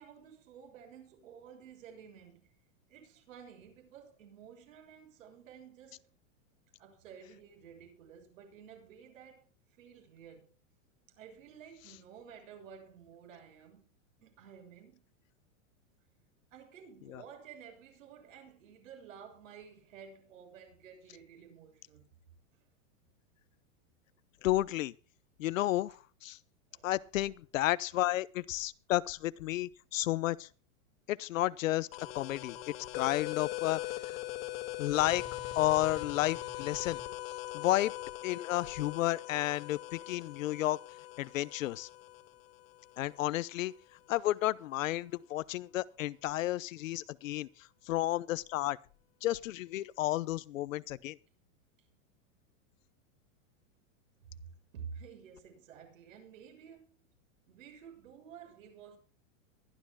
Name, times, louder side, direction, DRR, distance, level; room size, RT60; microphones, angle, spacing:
voice 1, 0.0-2.5 2.9-6.0 6.8-9.5 9.8-10.5 11.1-13.8 14.2-15.1 16.5-22.1 22.5-22.6 26.7-27.3 54.2-54.4 54.7-57.0 57.5-59.0, right 7 dB, 70° right, 7.3 m, -52 dB
voice 2, 24.4-24.9 25.4-26.4 26.8-30.5 31.1-31.9 32.1-32.6 32.9-34.2 34.8-35.2 35.5-37.0 37.5-37.9 38.2-40.8 41.2-41.9 43.0-43.7 44.1-47.5 47.9-48.8 49.2-51.2, left 15 dB, 70° left, 0.9 m, -32 dB
sound 1, 31.9-43.3, left 16 dB, 45° left, 2.0 m, -41 dB
23.0 x 12.5 x 2.3 m
supercardioid pair, 175°, 41 cm